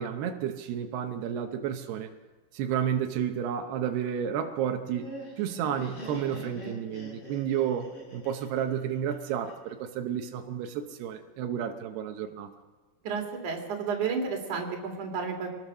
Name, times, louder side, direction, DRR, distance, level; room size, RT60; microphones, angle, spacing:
voice 1, 0.0-2.1 2.5-12.5, right 9 dB, 90° right, 5 dB, 3.2 m, -31 dB
Laughter, 4.6-9.7, equal, 60° left, 7.4 m, -44 dB
voice 2, 13.0-15.5, right 5 dB, 55° right, 2 dB, 4.0 m, -31 dB
24.5 x 19.0 x 6.3 m, 1.3 s
omnidirectional pair, 4.6 m